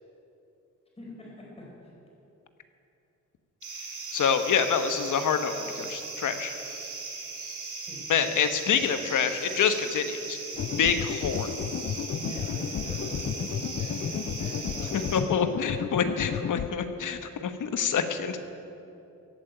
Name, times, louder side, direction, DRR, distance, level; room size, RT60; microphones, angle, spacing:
voice 1, 1.0-1.9 7.9-8.0 12.1-15.6, equal, 20° left, -4 dB, 4.5 m, -42 dB
sound 1, 3.6-15.2, right 4 dB, 70° right, 3.5 m, -38 dB
voice 2, 4.1-6.5 8.1-10.4 10.8-11.5 14.9-18.4, left 7 dB, 75° left, 9 dB, 1.2 m, -27 dB
sound 2, 10.6-16.7, left 9 dB, 45° left, 0.4 m, -32 dB
15.5 x 8.8 x 9.1 m, 2.8 s
wide cardioid pair, 160°, 31 cm